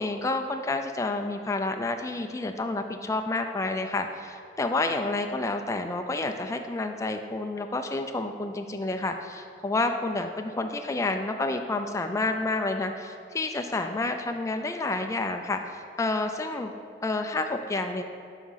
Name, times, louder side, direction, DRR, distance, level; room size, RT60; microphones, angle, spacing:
voice 1, 0.0-16.7 17.0-18.0, left 2 dB, 15° left, 5 dB, 0.3 m, -29 dB
11.0 x 3.6 x 5.6 m, 2.3 s
head